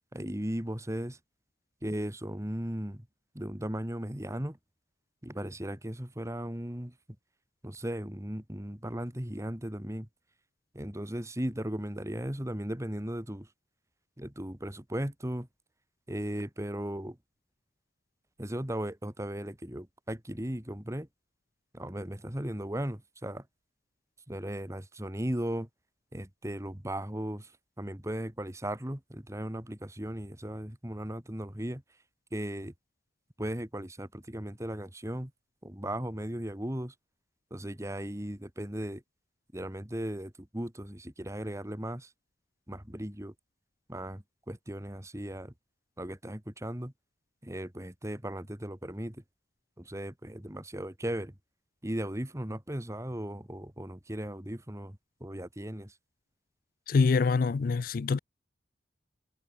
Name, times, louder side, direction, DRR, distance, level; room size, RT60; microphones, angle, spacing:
voice 1, 0.1-1.2 1.8-3.1 3.3-4.6 5.2-6.9 7.6-10.1 10.7-13.5 14.2-15.5 16.1-17.2 18.4-21.1 21.7-23.5 24.3-25.7 26.1-27.5 27.8-31.8 32.3-32.7 33.4-35.3 35.6-36.9 37.5-39.0 39.5-42.1 42.7-43.3 43.9-45.5 46.0-46.9 47.4-49.2 49.8-51.3 51.8-55.9, right 1 dB, 15° right, 2.1 m, -37 dB
voice 2, 56.9-58.2, left 4 dB, 55° left, 0.4 m, -25 dB
head